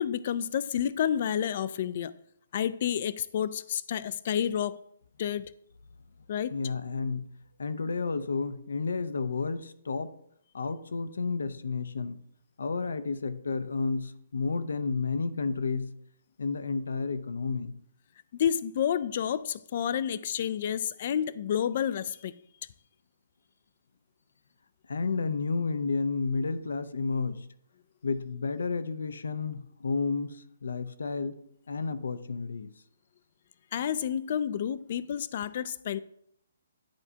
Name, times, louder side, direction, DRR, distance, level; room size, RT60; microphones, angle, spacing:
voice 1, 0.0-2.1 2.5-4.8 5.2-5.5 6.3-6.5 18.3-22.3 33.7-36.0, left 9 dB, 40° left, 0.3 m, -30 dB
voice 2, 6.5-7.3 7.6-10.1 10.5-12.2 12.6-15.9 16.4-17.7 24.9-27.5 28.0-31.4 31.7-32.7, left 4 dB, 85° left, 0.6 m, -31 dB
10.0 x 4.4 x 2.8 m
hypercardioid pair, 165°, 0 cm